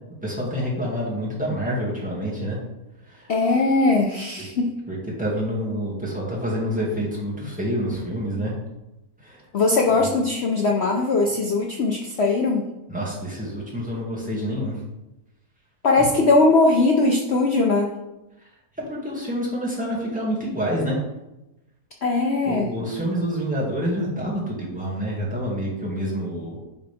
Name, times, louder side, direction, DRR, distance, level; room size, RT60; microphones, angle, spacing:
voice 1, 0.2-2.6 3.0-3.3 4.9-8.5 9.2-9.4 10.0-10.1 12.9-14.8 16.0-16.1 18.4-18.5 18.9-21.0 22.5-26.6, equal, 5° right, -6 dB, 1.9 m, -27 dB
voice 2, 3.3-4.7 9.5-12.7 15.8-17.9 22.0-22.7, left 3 dB, 60° left, 0 dB, 0.7 m, -20 dB
10.5 x 3.9 x 3.5 m, 0.96 s
omnidirectional pair, 1.8 m